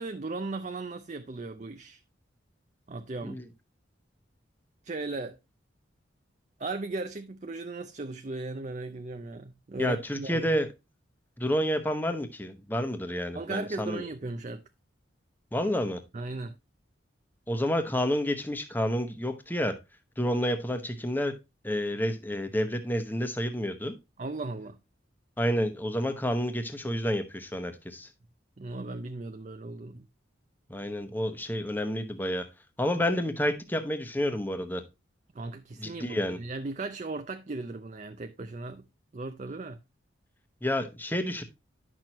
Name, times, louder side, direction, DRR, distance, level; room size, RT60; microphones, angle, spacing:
voice 1, 0.0-2.0 2.9-3.4 4.8-5.4 6.6-10.5 13.3-14.6 16.1-16.5 24.2-24.8 28.6-30.1 35.3-38.8 39.1-39.8, right 3 dB, 35° right, 0.5 m, -37 dB
voice 2, 9.8-10.7 11.4-14.0 15.5-16.0 17.5-19.7 20.2-21.3 21.6-23.9 25.4-28.1 30.7-32.5 32.8-34.8 35.8-36.4 40.6-41.4, equal, 10° left, 1.0 m, -29 dB
10.5 x 6.1 x 2.9 m
head